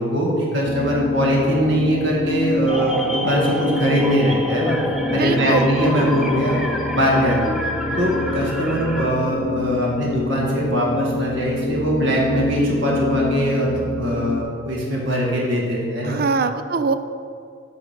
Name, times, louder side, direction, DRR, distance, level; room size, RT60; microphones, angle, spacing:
voice 1, 0.0-4.8 5.1-6.6 6.9-7.5 8.0-13.7 13.9-16.2, equal, 65° right, -3 dB, 1.9 m, -21 dB
sound 1, 0.7-14.4, left 3 dB, 50° left, 0.5 m, -27 dB
sound 2, 2.7-9.1, equal, ahead, 0.6 m, -27 dB
voice 2, 5.1-5.7 16.0-16.9, right 4 dB, 45° right, 10 dB, 0.4 m, -22 dB
9.7 x 3.9 x 6.6 m, 2.3 s
head